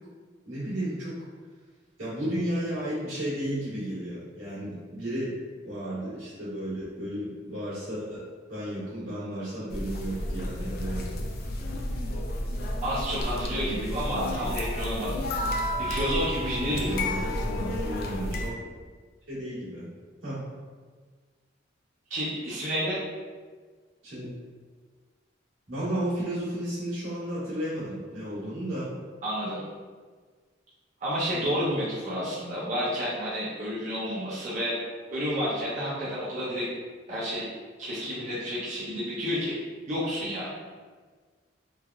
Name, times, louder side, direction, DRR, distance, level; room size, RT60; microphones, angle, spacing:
voice 1, 0.4-1.1 2.0-5.3 5.6-11.1 14.1-14.5 16.7-18.6 19.3-19.9 20.2-20.4 24.0-24.3 25.7-28.9, right 1 dB, 85° right, -9 dB, 1.4 m, -33 dB
sound 1, 9.7-18.5, left 1 dB, 50° left, 0.4 m, -31 dB
voice 2, 12.8-15.2 15.8-17.1 22.1-23.0 29.2-29.6 31.0-34.7 35.1-36.7 37.1-37.4 37.8-39.5 39.9-40.5, equal, 40° right, -9 dB, 0.6 m, -30 dB
3.2 x 2.2 x 2.3 m, 1.5 s
head